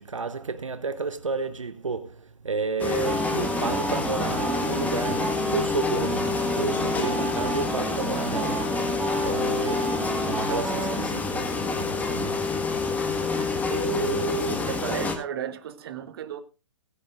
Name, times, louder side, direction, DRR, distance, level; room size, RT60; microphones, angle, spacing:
voice 1, 0.0-8.9 9.2-12.6 13.4-14.7, right 4 dB, 80° right, 1.1 m, -31 dB
sound 1, 2.8-15.2, left 4 dB, 10° left, 1.5 m, -28 dB
sound 2, 3.0-11.0, right 2 dB, 5° right, 2.0 m, -31 dB
voice 2, 14.7-16.4, right 9 dB, 50° right, 1.3 m, -34 dB
19.0 x 9.4 x 2.5 m
figure-of-eight pair, 125°, 16 cm